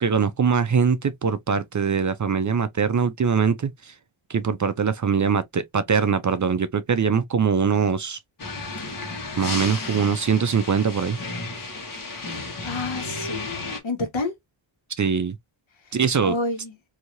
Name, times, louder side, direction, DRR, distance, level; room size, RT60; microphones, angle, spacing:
voice 1, 0.0-3.9 4.3-8.2 9.4-11.2 15.0-15.4 15.9-16.3, right 6 dB, 40° right, 0.5 m, -22 dB
sound 1, 8.4-13.8, left 3 dB, 45° left, 1.3 m, -33 dB
voice 2, 12.2-13.5 13.8-14.3 16.2-16.8, left 2 dB, 70° left, 1.4 m, -29 dB
3.0 x 2.8 x 2.5 m
wide cardioid pair, 95°, 48 cm